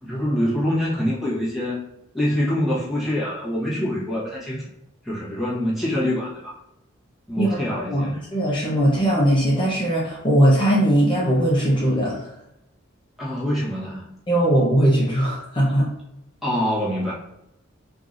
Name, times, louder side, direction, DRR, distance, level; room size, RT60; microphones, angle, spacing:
voice 1, 0.0-1.8 2.1-4.7 5.0-6.6 7.3-8.2 13.2-14.1 16.4-17.1, left 1 dB, ahead, -8 dB, 1.1 m, -25 dB
voice 2, 7.4-12.3 14.3-15.9, right 1 dB, 25° left, -6 dB, 0.7 m, -20 dB
4.7 x 2.6 x 2.5 m, 0.84 s
head